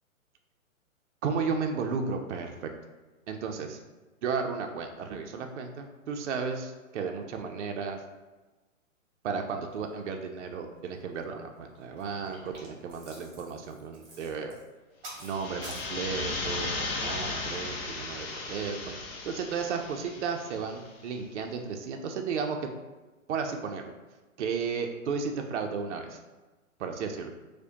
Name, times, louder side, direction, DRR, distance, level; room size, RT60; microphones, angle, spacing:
voice 1, 1.2-2.7 3.3-3.8 4.2-8.0 9.2-14.5 15.2-19.0 19.2-22.6 23.3-23.9 24.4-26.2 26.8-27.3, right 5 dB, 60° right, 4 dB, 0.5 m, -34 dB
sound 1, 10.9-11.2 11.6-15.9, right 2 dB, 25° right, 1.1 m, -48 dB
sound 2, 15.1-20.8, left 3 dB, 45° left, 0.7 m, -36 dB
4.6 x 2.2 x 2.7 m, 1.2 s
figure-of-eight pair, 120°, 41 cm